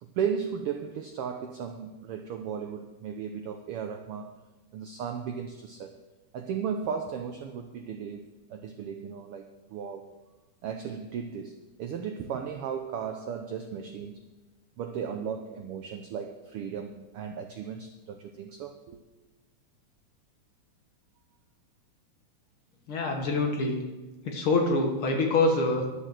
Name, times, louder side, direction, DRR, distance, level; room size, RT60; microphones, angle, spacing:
voice 1, 0.0-4.4 4.7-6.0 6.3-10.1 10.6-14.2 14.8-19.0, right 7 dB, 85° right, 6 dB, 1.2 m, -35 dB
voice 2, 22.9-23.8 24.3-25.9, left 2 dB, 55° left, 2 dB, 1.8 m, -25 dB
11.5 x 6.6 x 7.5 m, 1.2 s
omnidirectional pair, 3.3 m